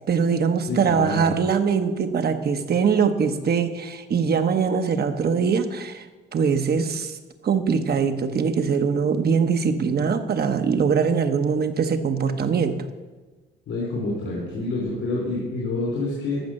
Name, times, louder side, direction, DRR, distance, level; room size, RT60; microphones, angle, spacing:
voice 1, 0.1-6.1 6.3-7.2 7.4-12.8, right 6 dB, 50° right, 8 dB, 1.1 m, -22 dB
voice 2, 0.7-1.3 13.7-16.4, left 2 dB, 80° left, -4 dB, 4.3 m, -27 dB
14.5 x 6.0 x 6.6 m, 1.2 s
cardioid pair, 90°, 20 cm